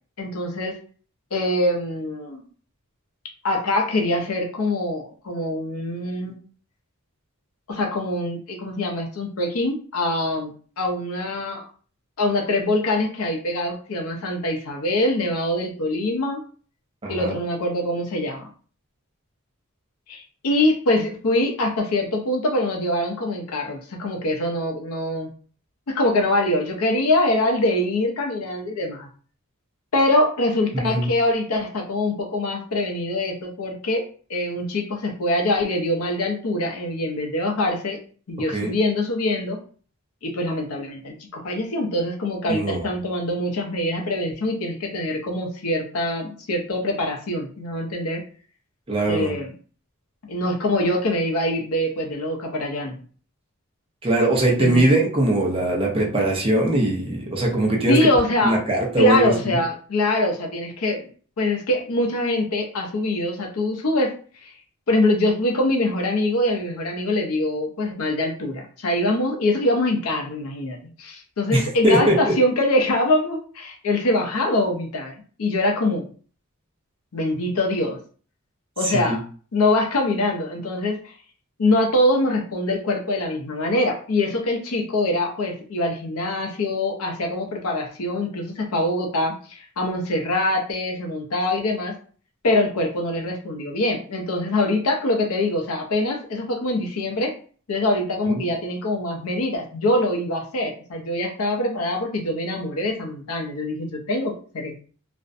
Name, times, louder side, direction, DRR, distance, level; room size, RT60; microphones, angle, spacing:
voice 1, 0.2-0.8 1.3-2.4 3.4-6.4 7.7-10.5 10.8-11.7 12.2-16.4 17.1-18.5 20.1-25.3 25.9-29.1 29.9-34.0 34.3-38.0 38.3-39.6 40.2-48.2 49.0-49.5 50.2-53.0 54.6-55.0 57.9-58.6 59.0-61.1 61.4-64.1 64.4-64.5 64.9-75.1 75.4-76.0 77.1-78.0 78.8-79.2 79.5-81.0 81.6-91.9 92.4-97.3 97.7-104.7, left 1 dB, 80° left, 2 dB, 0.6 m, -24 dB
voice 2, 17.0-17.3 30.7-31.1 38.5-38.7 42.5-42.8 48.9-49.3 54.0-58.1 58.4-59.5 71.5-72.3 78.9-79.2 98.3-98.4, right 1 dB, 25° right, -1 dB, 0.6 m, -21 dB
2.5 x 2.1 x 2.5 m, 0.43 s
head